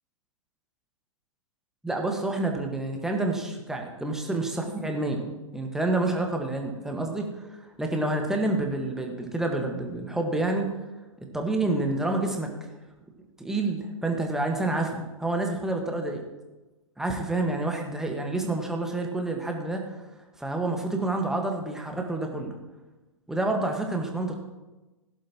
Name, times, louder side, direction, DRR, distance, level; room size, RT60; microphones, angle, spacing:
voice 1, 1.8-7.3 7.8-10.6 11.3-12.7 13.4-16.2 17.0-20.0 20.4-22.6 23.3-24.4, right 2 dB, 5° right, 2 dB, 1.5 m, -28 dB
16.5 x 11.0 x 3.0 m, 1.1 s
figure-of-eight pair, 120°, 17 cm